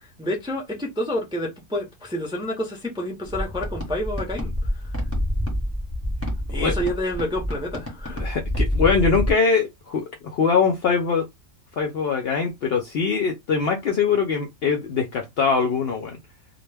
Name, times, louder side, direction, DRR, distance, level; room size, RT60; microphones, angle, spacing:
voice 1, 0.0-4.9 6.5-8.2, left 1 dB, 5° right, 0.4 m, -29 dB
sound 1, 3.3-9.3, equal, 10° left, 0.8 m, -27 dB
voice 2, 8.2-11.3 11.8-16.2, left 5 dB, 65° left, 0.6 m, -22 dB
2.3 x 2.1 x 3.2 m
omnidirectional pair, 1.4 m